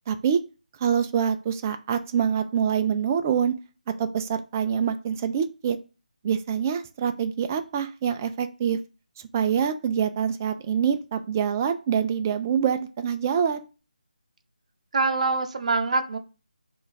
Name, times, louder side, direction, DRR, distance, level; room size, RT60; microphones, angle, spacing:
voice 1, 0.1-0.4 0.8-3.5 4.0-5.8 6.2-8.8 9.3-13.7, right 7 dB, 20° right, 8 dB, 0.3 m, -25 dB
voice 2, 14.9-16.2, right 3 dB, 50° right, 5 dB, 0.7 m, -24 dB
3.1 x 2.5 x 3.9 m, 0.32 s
figure-of-eight pair, 160°, 5 cm